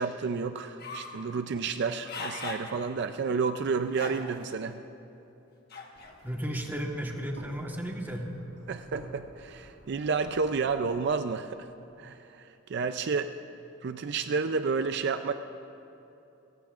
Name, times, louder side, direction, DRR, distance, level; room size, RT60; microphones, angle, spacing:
voice 1, 0.0-4.8 8.7-11.7 12.0-13.3 13.8-15.3, right 5 dB, 60° right, 9 dB, 0.4 m, -30 dB
sound 1, 0.8-1.2 1.8-2.7 3.2-3.3 3.9-4.5 5.7-6.1, left 4 dB, 50° left, 1.3 m, -39 dB
sound 2, 5.9-11.0, right 1 dB, 80° right, 2.0 m, -51 dB
voice 2, 6.2-8.2, equal, 10° right, 1 dB, 1.3 m, -34 dB
28.5 x 15.0 x 2.5 m, 2.9 s
head